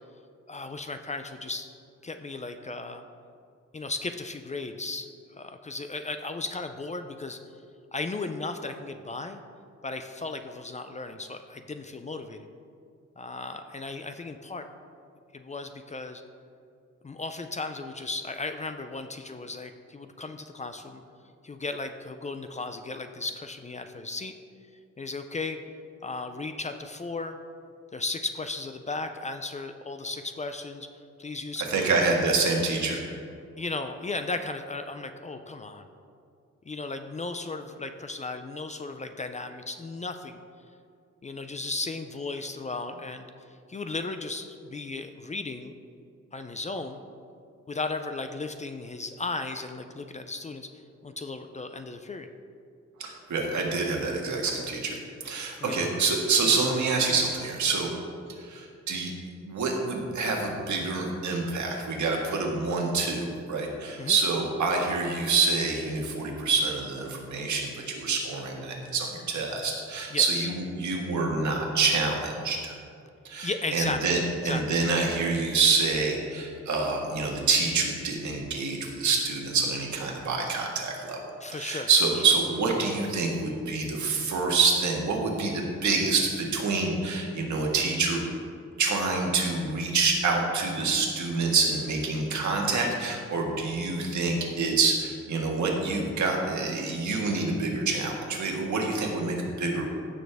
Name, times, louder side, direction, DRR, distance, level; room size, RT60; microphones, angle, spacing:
voice 1, 0.5-1.7 2.0-3.0 3.7-7.4 7.9-9.4 9.8-12.5 13.2-14.7 15.3-16.2 17.0-21.0 21.4-24.3 25.0-25.6 26.0-27.4 27.9-30.9 31.2-32.1 33.6-35.9 36.7-40.4 41.2-45.7 46.3-47.0 47.7-50.7 51.0-52.3 55.6-55.9 56.5-56.6 64.0-64.2 70.1-70.5 73.4-74.8 81.4-81.9, left 3 dB, 25° left, 8 dB, 0.4 m, -35 dB
voice 2, 31.7-33.0 53.0-55.0 55.2-57.9 58.4-59.1 59.4-72.7 73.2-81.2 81.5-88.2 88.8-99.9, right 4 dB, 80° right, 0 dB, 1.6 m, -27 dB
15.5 x 6.3 x 3.4 m, 2.4 s
wide cardioid pair, 175°, 29 cm